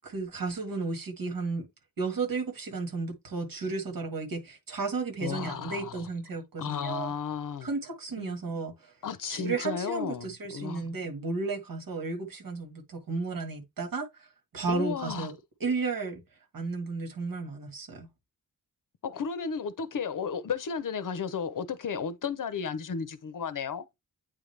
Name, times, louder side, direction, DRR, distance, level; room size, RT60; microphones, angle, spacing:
voice 1, 0.0-1.7 2.0-7.1 7.6-8.9 9.3-14.3 14.5-15.4 15.6-16.2 16.5-18.1, right 4 dB, 85° right, 1.8 m, -33 dB
voice 2, 5.2-6.1 6.6-7.7 8.2-8.3 9.0-10.9 14.7-15.3 19.0-23.8, left 6 dB, 65° left, 0.8 m, -33 dB
8.8 x 3.7 x 3.3 m
wide cardioid pair, 165°, 34 cm